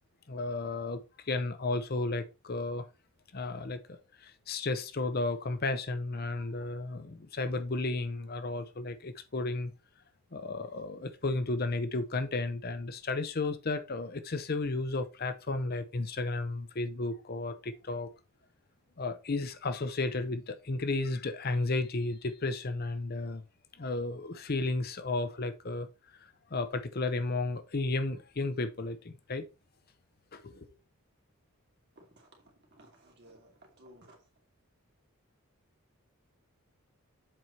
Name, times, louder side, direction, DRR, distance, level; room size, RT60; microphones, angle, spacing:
voice 1, 0.3-2.9 3.3-9.7 10.3-18.1 19.0-23.4 23.8-25.9 26.2-29.4 30.3-30.7, left 2 dB, 45° left, 0.7 m, -33 dB
voice 2, 32.0-32.3 32.7-34.2, right 1 dB, 50° right, 2.6 m, -57 dB
7.6 x 4.8 x 4.1 m
head